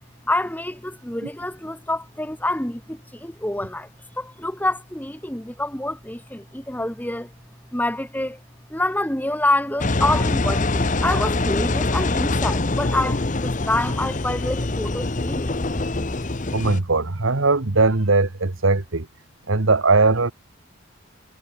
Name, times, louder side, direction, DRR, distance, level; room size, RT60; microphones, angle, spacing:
voice 1, 0.3-3.9 4.2-7.3 7.7-8.4 8.7-15.6, left 1 dB, 10° left, 1.7 m, -27 dB
Engine, 9.8-16.8, left 2 dB, 35° left, 0.9 m, -24 dB
voice 2, 16.5-19.1 19.5-20.3, right 3 dB, 70° right, 1.4 m, -19 dB
head